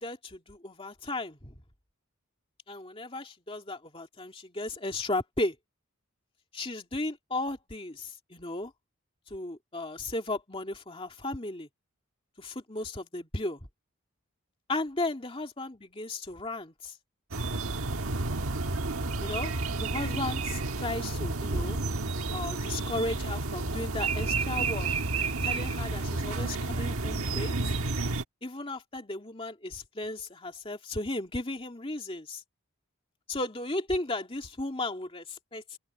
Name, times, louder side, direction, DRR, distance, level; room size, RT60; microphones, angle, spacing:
voice 1, 0.0-1.6 2.7-5.5 6.5-8.7 9.3-11.7 12.4-13.6 14.7-16.9 19.2-21.8 22.3-24.9 25.4-27.5 28.4-32.4 33.3-35.8, left 2 dB, 25° left, 2.4 m, -35 dB
sound 1, 17.3-28.2, right 3 dB, 75° right, 1.4 m, -31 dB
open air
head